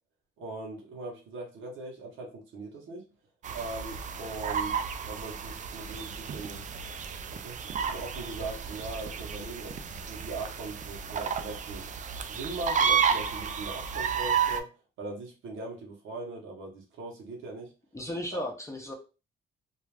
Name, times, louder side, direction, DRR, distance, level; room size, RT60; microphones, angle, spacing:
voice 1, 0.4-3.0 3.5-4.8 5.1-6.6 7.4-11.9 12.3-14.7 15.0-17.7 18.3-18.4, right 2 dB, 80° right, -1 dB, 0.9 m, -40 dB
sound 1, 3.4-14.6, right 7 dB, 40° right, 0.4 m, -32 dB
voice 2, 17.9-18.9, left 1 dB, 15° left, 1 dB, 0.6 m, -35 dB
2.4 x 2.3 x 3.2 m, 0.32 s
cardioid pair, 90°, 20 cm